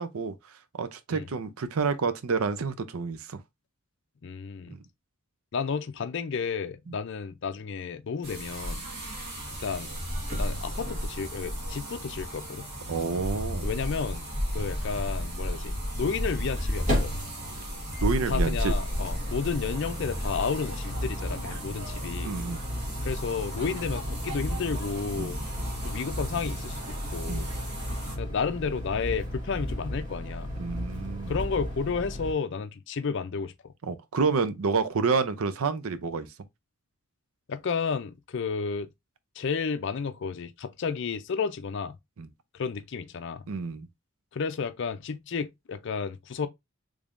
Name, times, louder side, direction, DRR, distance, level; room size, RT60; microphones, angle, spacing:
voice 1, 0.0-3.4 4.7-4.8 6.9-7.0 12.9-13.7 18.0-18.7 22.2-22.6 25.2-25.3 27.2-27.5 30.6-31.3 33.8-36.3 42.2-42.3 43.5-43.9, right 4 dB, 80° right, 0.5 m, -29 dB
voice 2, 4.2-4.8 5.5-8.8 9.6-9.9 10.4-12.7 13.6-14.3 14.5-17.1 18.3-22.3 23.0-25.4 25.8-27.5 28.2-30.5 31.3-33.7 37.5-38.9 39.4-42.0 42.5-43.4 44.3-46.5, left 5 dB, 55° left, 0.4 m, -32 dB
sound 1, 8.2-28.2, equal, 50° right, 1.5 m, -34 dB
sound 2, 13.7-13.8 14.0-14.1 16.0-32.3, equal, 35° right, 1.4 m, -35 dB
3.5 x 3.3 x 2.5 m
head